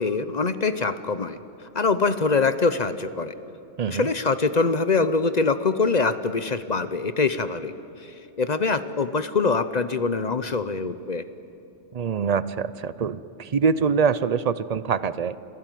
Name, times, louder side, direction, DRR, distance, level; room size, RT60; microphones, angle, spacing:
voice 1, 0.0-1.4 1.7-3.3 3.9-7.7 8.0-11.2, left 4 dB, 40° left, 12 dB, 0.8 m, -24 dB
voice 2, 3.8-4.1 11.9-15.4, right 6 dB, 45° right, 16 dB, 0.5 m, -24 dB
27.5 x 16.0 x 9.2 m, 2.9 s
omnidirectional pair, 1.2 m